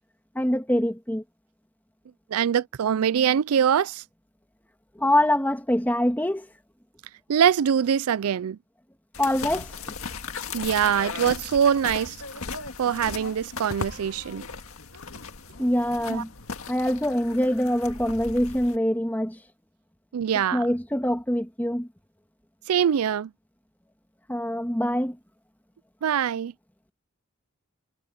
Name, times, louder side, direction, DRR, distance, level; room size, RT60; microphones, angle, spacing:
voice 1, 0.3-1.2 5.0-6.5 9.2-9.7 15.6-16.3 16.7-19.4 20.5-21.9 24.3-25.2, left 1 dB, 10° left, 2.0 m, -24 dB
voice 2, 2.3-4.0 7.3-8.6 10.5-12.2 12.8-14.4 16.1-16.2 20.1-20.6 22.7-23.3 26.0-26.5, right 8 dB, 85° right, 0.4 m, -23 dB
sound 1, 9.1-18.8, left 4 dB, 70° left, 1.9 m, -37 dB
head